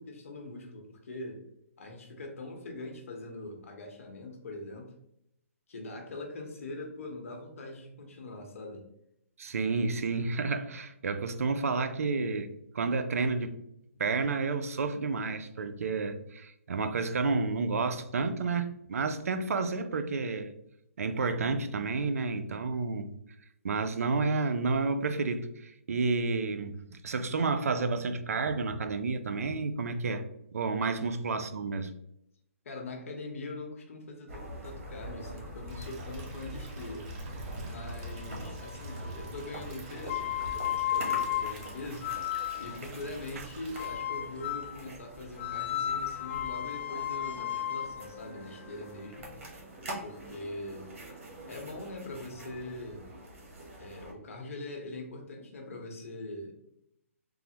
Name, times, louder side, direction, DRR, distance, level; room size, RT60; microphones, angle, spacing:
voice 1, 0.0-1.4 1.8-4.9 5.7-8.8 30.8-30.9 32.6-37.1 37.6-42.1 42.6-49.3 50.0-50.9 51.5-53.1 53.8-56.5, left 2 dB, 70° left, 2 dB, 0.8 m, -42 dB
voice 2, 9.4-13.6 14.0-20.5 21.0-23.2 23.6-30.3 30.5-31.9, right 4 dB, 80° right, 10 dB, 0.3 m, -30 dB
sound 1, 34.3-54.1, right 1 dB, 60° right, 1.0 m, -44 dB
sound 2, 35.7-43.9, right 3 dB, 30° right, 0.7 m, -53 dB
sound 3, 40.0-42.9 43.7-44.8 45.4-49.4, left 11 dB, 50° left, 0.4 m, -34 dB
3.2 x 2.0 x 2.8 m, 0.79 s
hypercardioid pair, 150°, 8 cm